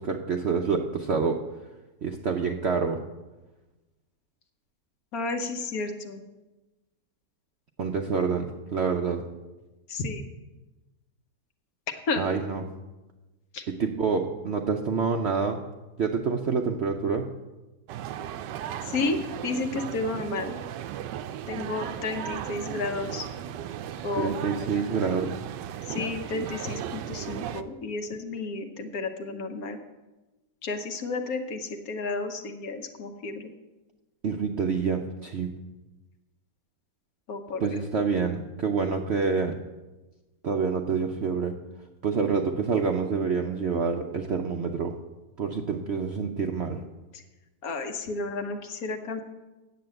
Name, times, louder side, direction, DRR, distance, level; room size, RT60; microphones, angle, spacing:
voice 1, 0.0-1.4 2.0-3.0 7.8-9.3 12.2-12.7 13.7-15.6 16.0-17.3 24.1-25.5 34.2-35.5 37.6-39.6 40.4-41.6 42.0-44.9 45.4-46.8, right 5 dB, 60° right, 3 dB, 0.7 m, -27 dB
voice 2, 5.1-6.2 9.9-10.2 12.1-12.2 13.5-13.6 18.9-20.5 21.5-23.3 24.0-24.3 25.9-29.8 30.6-33.5 37.3-37.7 47.1-47.2 47.6-49.2, left 3 dB, 60° left, 6 dB, 1.4 m, -32 dB
sound 1, 17.9-27.6, right 10 dB, 90° right, 1.2 m, -36 dB
9.1 x 7.6 x 7.7 m, 1.1 s
omnidirectional pair, 1.8 m